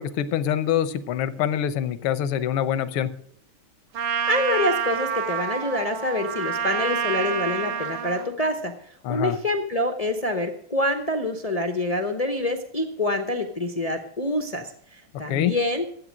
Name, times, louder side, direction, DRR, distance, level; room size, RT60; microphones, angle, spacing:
voice 1, 0.0-3.1 9.0-9.4 15.3-15.6, left 10 dB, 80° left, 14 dB, 1.7 m, -25 dB
Trumpet, 3.9-8.3, right 8 dB, 75° right, 2.0 m, -28 dB
voice 2, 4.3-8.7 9.1-15.9, left 1 dB, 60° left, 4 dB, 0.4 m, -26 dB
13.5 x 8.3 x 6.3 m, 0.64 s
omnidirectional pair, 2.4 m